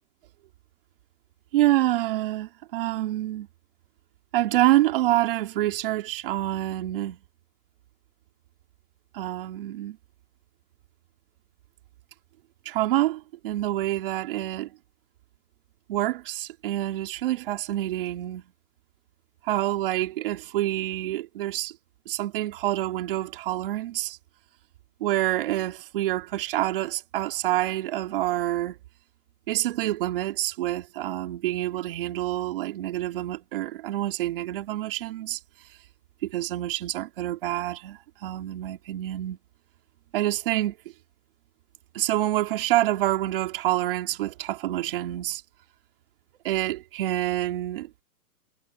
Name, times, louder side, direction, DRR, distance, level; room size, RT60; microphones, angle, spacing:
voice 1, 1.5-3.5 4.3-7.2 9.1-10.0 12.6-14.7 15.9-18.4 19.4-21.7 22.1-24.2 25.0-28.8 29.5-35.4 36.2-39.4 40.1-40.8 41.9-45.4 46.4-47.9, right 14 dB, 35° right, 3.0 m, -27 dB
hypercardioid pair, 170°, 46 cm